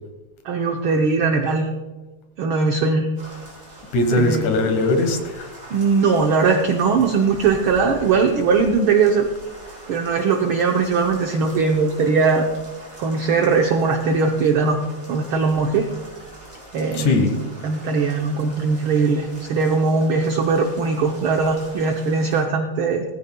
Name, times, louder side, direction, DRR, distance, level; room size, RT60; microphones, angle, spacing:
voice 1, 0.4-1.7 2.4-3.1 4.1-4.4 5.7-9.3 9.9-12.5 13.0-14.8 15.1-15.9 16.7-17.2 17.6-23.0, right 4 dB, 80° right, 3 dB, 1.1 m, -20 dB
sound 1, 3.1-22.4, right 1 dB, 15° right, 4.5 m, -42 dB
voice 2, 3.9-5.5 16.9-17.4, left 2 dB, 85° left, 6 dB, 2.8 m, -20 dB
17.0 x 15.0 x 2.2 m, 1.2 s
omnidirectional pair, 3.3 m